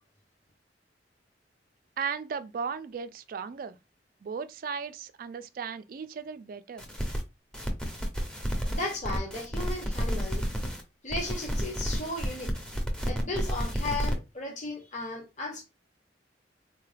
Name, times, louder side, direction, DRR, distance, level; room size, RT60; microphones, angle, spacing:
voice 1, 2.0-3.8 4.2-6.9, right 6 dB, 50° right, 0.3 m, -36 dB
sound 1, 6.8-7.2 7.5-10.8 11.1-14.1, equal, 5° left, 0.6 m, -31 dB
voice 2, 8.7-10.5 11.0-12.5 13.1-15.6, left 2 dB, 40° left, 0.9 m, -35 dB
3.8 x 2.2 x 3.2 m
head